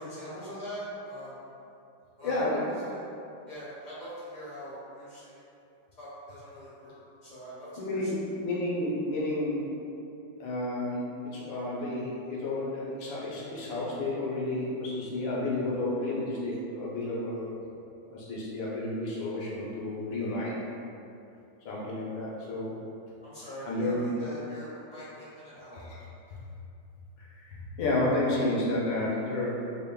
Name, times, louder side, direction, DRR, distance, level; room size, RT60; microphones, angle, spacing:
voice 1, 0.0-1.4 2.2-2.5 2.8-3.0 3.5-5.4 6.0-8.1 23.2-25.8, equal, 30° left, -10 dB, 1.0 m, -42 dB
voice 2, 2.2-2.7 7.8-9.6 10.4-17.5 18.1-20.5 21.6-22.8 23.6-24.0 25.7-25.9 27.2-29.6, left 2 dB, 70° left, -6 dB, 1.4 m, -31 dB
4.6 x 2.9 x 2.2 m, 2.7 s
omnidirectional pair, 2.2 m